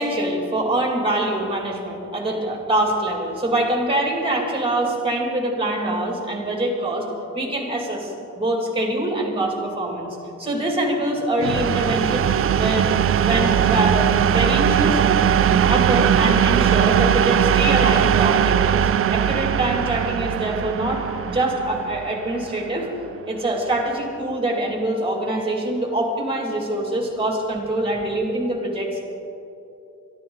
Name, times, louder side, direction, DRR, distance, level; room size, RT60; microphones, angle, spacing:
voice 1, 0.0-7.1 7.3-12.3 12.6-12.9 13.2-15.0 15.7-22.9 23.3-28.9, right 1 dB, 20° right, 0 dB, 2.6 m, -24 dB
sound 1, 11.4-23.0, right 8 dB, 50° right, 0.4 m, -19 dB
23.5 x 12.5 x 4.0 m, 2.8 s
wide cardioid pair, 170°, 29 cm